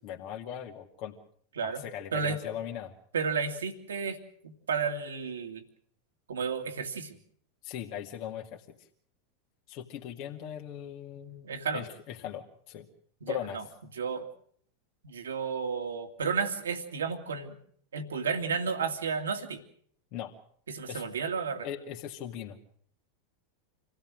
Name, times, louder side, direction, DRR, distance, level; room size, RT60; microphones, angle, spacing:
voice 1, 0.0-1.2 1.6-2.9 7.6-8.8 9.7-12.9 13.3-13.6 20.1-20.3 20.9-21.3 21.6-22.6, left 10 dB, 50° left, 0 dB, 2.2 m, -39 dB
voice 2, 3.1-4.2 4.4-5.6 6.3-7.2 11.4-11.9 13.2-13.6 13.9-14.3 15.0-17.6 17.9-19.6 20.7-21.7, right 5 dB, 80° right, 7 dB, 2.4 m, -32 dB
26.5 x 16.5 x 7.7 m, 0.63 s
hypercardioid pair, 90°, 0 cm